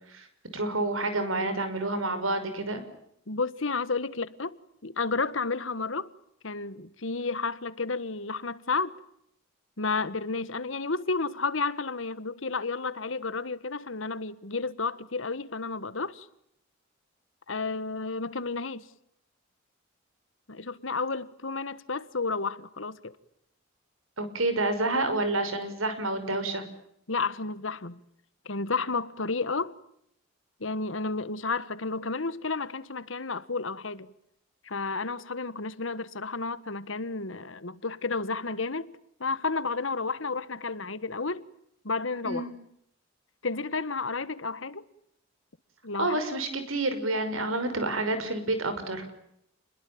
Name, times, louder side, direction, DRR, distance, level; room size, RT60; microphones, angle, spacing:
voice 1, 0.5-2.8 24.2-26.6 42.2-42.5 46.0-49.1, right 2 dB, 90° right, 5.9 m, -29 dB
voice 2, 3.3-6.1 6.4-8.9 9.8-16.3 17.5-18.9 20.5-23.2 27.1-28.0 28.4-29.7 30.6-34.1 34.6-41.4 41.8-42.5 43.4-44.8 45.8-46.2, left 4 dB, 70° left, 1.5 m, -31 dB
29.5 x 21.5 x 8.7 m
head